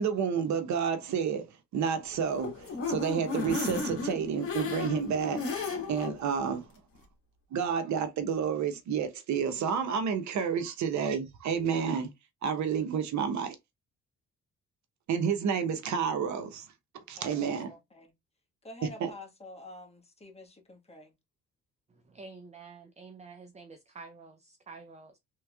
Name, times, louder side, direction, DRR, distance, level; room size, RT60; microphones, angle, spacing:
voice 1, 0.0-1.5 1.7-5.4 5.9-6.6 7.5-12.1 12.4-13.6 15.1-16.6 17.1-17.7 19.0-19.1, right 7 dB, 70° right, 0.8 m, -30 dB
sound 1, 2.1-6.1 6.5-6.6 6.9-7.0, left 4 dB, 45° left, 1.5 m, -34 dB
voice 2, 17.2-18.1 18.6-21.1, left 1 dB, 20° left, 1.4 m, -48 dB
voice 3, 22.1-25.2, right 4 dB, 20° right, 0.5 m, -49 dB
3.5 x 3.1 x 2.3 m
cardioid pair, 90°, 30 cm